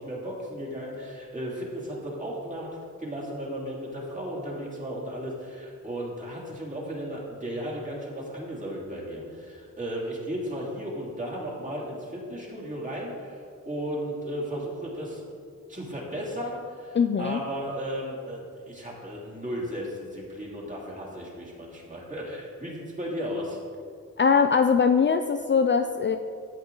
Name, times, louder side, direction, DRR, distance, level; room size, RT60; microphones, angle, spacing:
voice 1, 0.0-2.7 3.0-15.2 15.7-23.6, equal, 25° right, -4 dB, 2.8 m, -35 dB
voice 2, 17.0-17.4 24.2-26.2, left 6 dB, 35° left, 6 dB, 0.4 m, -21 dB
13.5 x 8.3 x 3.9 m, 2.2 s
wide cardioid pair, 110°, 32 cm